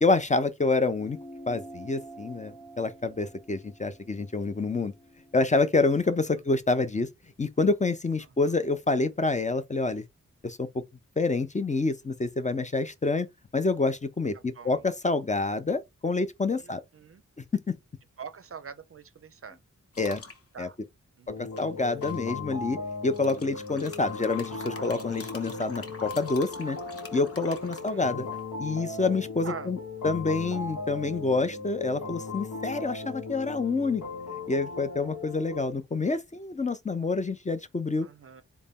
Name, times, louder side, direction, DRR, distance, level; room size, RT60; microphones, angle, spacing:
voice 1, 0.0-1.2 1.5-4.9 5.3-7.1 7.4-10.0 10.4-10.8 11.2-13.3 13.5-16.8 17.5-17.8 20.0-20.2 20.6-20.7 21.4-22.8 23.0-26.8 27.1-28.3 28.6-29.8 30.0-34.0 34.5-38.1, left 3 dB, 25° left, 0.4 m, -27 dB
sound 1, 0.9-5.8, right 1 dB, ahead, 0.8 m, -48 dB
voice 2, 16.6-17.2 18.2-19.6 20.5-20.8 21.2-21.5 27.6-28.2 29.4-29.7 38.0-38.4, right 6 dB, 50° right, 0.5 m, -44 dB
sound 2, 19.9-20.4 21.6-22.3 23.1-28.4, left 3 dB, 50° left, 0.9 m, -44 dB
sound 3, 21.3-35.7, left 3 dB, 80° left, 1.0 m, -37 dB
3.9 x 2.2 x 3.5 m
wide cardioid pair, 105°, 30 cm